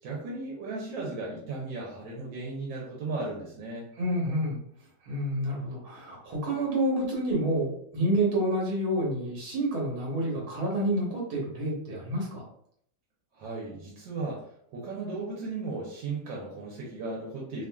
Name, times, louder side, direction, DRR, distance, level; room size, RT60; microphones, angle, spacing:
voice 1, 0.0-3.9 13.3-17.7, right 3 dB, 80° right, -3 dB, 1.4 m, -36 dB
voice 2, 4.0-4.6 5.0-12.4, right 1 dB, 60° right, -4 dB, 1.5 m, -28 dB
3.2 x 2.4 x 2.2 m, 0.66 s
omnidirectional pair, 2.0 m